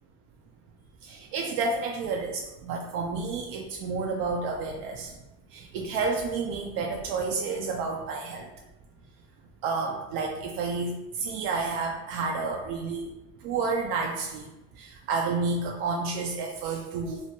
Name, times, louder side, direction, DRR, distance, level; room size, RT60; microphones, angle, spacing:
voice 1, 1.0-5.1 5.5-8.5 9.6-13.1 13.4-14.5 14.8-17.2, right 4 dB, 70° right, 0 dB, 0.5 m, -30 dB
2.9 x 2.1 x 2.7 m, 0.96 s
supercardioid pair, 115°, 41 cm